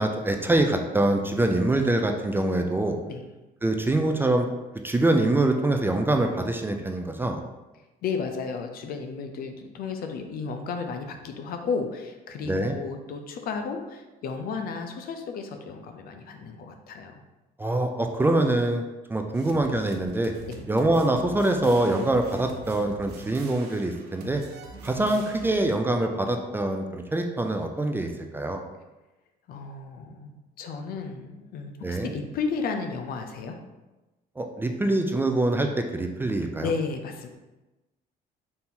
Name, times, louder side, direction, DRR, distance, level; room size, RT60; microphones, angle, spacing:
voice 1, 0.0-3.0 3.6-4.5 4.8-7.4 12.4-12.7 17.6-18.8 19.1-20.3 20.7-24.4 24.8-28.6 31.8-32.1 34.4-36.7, right 2 dB, 10° right, 4 dB, 0.3 m, -24 dB
voice 2, 8.0-17.2 20.5-20.6 29.5-30.3 30.6-33.6 36.6-37.3, left 5 dB, 60° left, 5 dB, 0.6 m, -33 dB
sound 1, 19.3-25.6, right 4 dB, 80° right, 0.6 m, -44 dB
4.2 x 2.8 x 3.6 m, 1.1 s
cardioid pair, 110°, 17 cm